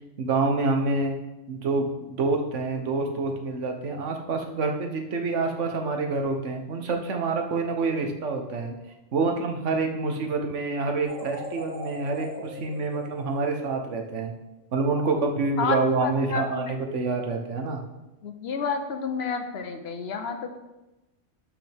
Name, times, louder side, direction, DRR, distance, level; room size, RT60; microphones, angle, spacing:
voice 1, 0.2-1.2 1.5-8.7 9.1-14.3 14.7-17.8, right 3 dB, 80° right, 4 dB, 1.3 m, -27 dB
sound 1, 11.0-14.2, left 1 dB, 35° left, 1.9 m, -40 dB
voice 2, 15.6-16.7 18.2-20.5, left 5 dB, 60° left, 7 dB, 1.1 m, -30 dB
12.0 x 5.4 x 3.5 m, 1.0 s
omnidirectional pair, 1.2 m